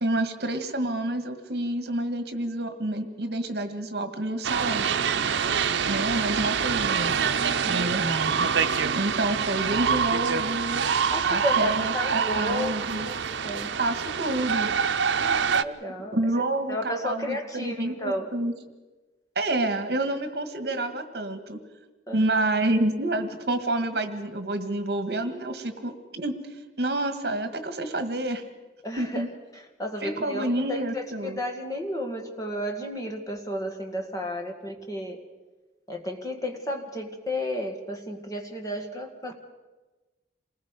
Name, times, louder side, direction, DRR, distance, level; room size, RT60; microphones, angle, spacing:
voice 1, 0.0-4.8 5.9-7.2 7.7-8.5 9.0-10.8 11.3-13.1 13.8-14.7 16.1-18.5 19.4-21.6 22.1-26.4 26.8-28.4 29.0-29.3 30.0-31.4, right 1 dB, 60° right, 8 dB, 1.7 m, -28 dB
sound 1, 4.4-15.6, right 6 dB, 85° right, 0.7 m, -26 dB
voice 2, 11.1-13.8 15.2-16.2 16.7-18.3 22.1-22.3 28.8-29.2 29.8-35.2 35.9-39.3, left 1 dB, 20° left, 3 dB, 2.0 m, -33 dB
28.0 x 20.0 x 5.2 m, 1.2 s
head